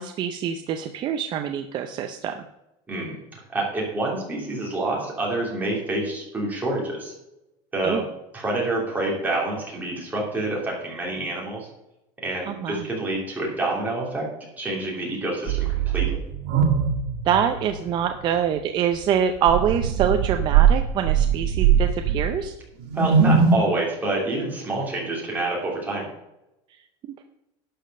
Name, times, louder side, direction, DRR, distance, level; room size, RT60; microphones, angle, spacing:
voice 1, 0.0-2.3 7.8-8.0 12.5-12.8 17.3-22.5, right 8 dB, 35° right, 6 dB, 0.6 m, -25 dB
voice 2, 3.5-7.1 7.7-8.0 8.3-11.7 12.2-14.3 14.6-16.2 22.9-26.1, right 2 dB, 10° right, -3 dB, 3.0 m, -27 dB
sound 1, 15.5-17.9 18.2-18.3 19.4-22.5 22.8-23.6, right 7 dB, 85° right, 2.0 m, -21 dB
11.5 x 5.2 x 6.6 m, 0.91 s
cardioid pair, 170°, 14 cm